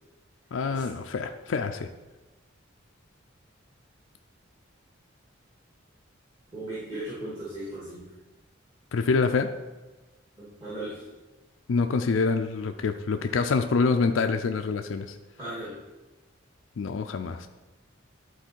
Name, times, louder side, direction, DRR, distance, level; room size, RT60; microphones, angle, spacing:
voice 1, 0.5-1.9 8.9-9.5 11.7-15.1 16.8-17.5, left 4 dB, 75° left, 6 dB, 0.4 m, -26 dB
voice 2, 6.5-8.1 10.4-11.0 15.4-15.8, right 1 dB, 25° right, -11 dB, 2.7 m, -37 dB
11.5 x 4.2 x 4.5 m, 1.2 s
head